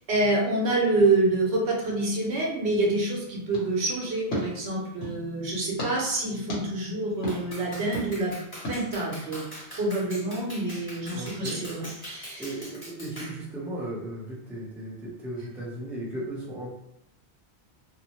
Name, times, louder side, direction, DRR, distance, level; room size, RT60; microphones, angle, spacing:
voice 1, 0.1-8.3 8.7-9.4 9.8-12.4, right 2 dB, 75° right, -2 dB, 1.0 m, -27 dB
sound 1, 3.5-5.2 5.8-5.9 6.5-6.6 7.2-7.4 7.9-8.1 8.6-8.8, left 1 dB, 65° left, 1.2 m, -35 dB
Clapping, 7.3-13.4, equal, 20° left, 0.9 m, -42 dB
voice 2, 11.1-11.6 12.4-16.7, right 1 dB, ahead, -6 dB, 0.5 m, -36 dB
2.7 x 2.0 x 2.9 m, 0.81 s
omnidirectional pair, 1.1 m